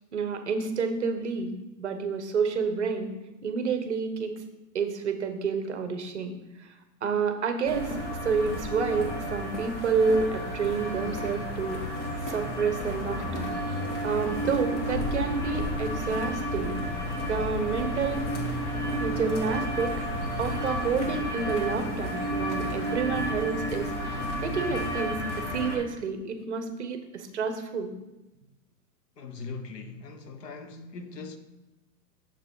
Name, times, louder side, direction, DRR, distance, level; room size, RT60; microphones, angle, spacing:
voice 1, 0.1-1.5 1.8-3.1 3.4-4.3 4.7-6.7 7.0-8.0 8.2-11.9 12.2-16.8 17.2-18.3 19.0-20.0 20.4-27.9, right 5 dB, 45° right, 0.7 m, -29 dB
sound 1, 7.7-25.8, equal, 45° left, 1.5 m, -31 dB
voice 2, 29.2-31.4, left 4 dB, 70° left, 1.0 m, -40 dB
6.6 x 5.9 x 3.7 m
hypercardioid pair, 175°, 50 cm